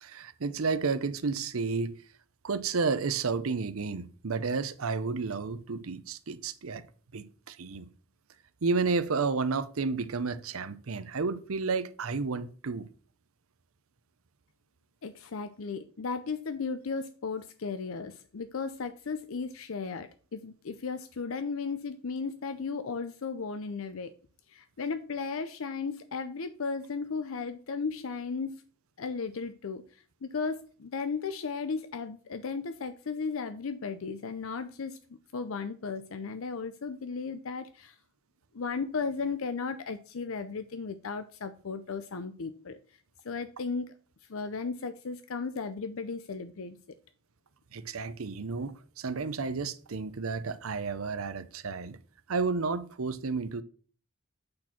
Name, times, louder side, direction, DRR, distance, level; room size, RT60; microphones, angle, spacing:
voice 1, 0.0-2.0 2.4-6.8 7.1-7.9 8.6-12.9 47.7-52.0 52.3-53.6, right 4 dB, 75° right, 0.7 m, -31 dB
voice 2, 15.0-24.1 24.5-28.5 29.0-29.8 30.2-35.0 35.3-38.0 38.5-42.8 43.2-43.9 44.3-46.8, left 5 dB, 70° left, 0.6 m, -35 dB
8.6 x 4.4 x 5.9 m
head